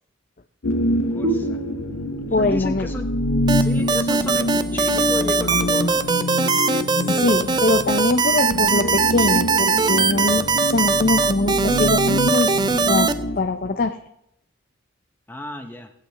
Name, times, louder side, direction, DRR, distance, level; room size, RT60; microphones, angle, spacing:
sound 1, 0.6-13.4, left 1 dB, 80° left, 0.9 m, -25 dB
voice 1, 0.8-1.6 2.2-3.1 3.5-6.0 15.3-15.9, left 1 dB, 10° left, 5 dB, 0.8 m, -33 dB
sound 2, 1.2-4.6, right 3 dB, 60° right, 1.0 m, -32 dB
voice 2, 2.3-2.9 7.2-12.5 12.9-14.0, left 3 dB, 45° left, 6 dB, 0.5 m, -22 dB
sound 3, 3.5-13.1, right 4 dB, 20° right, 0.3 m, -20 dB
18.5 x 8.4 x 3.3 m, 0.76 s
head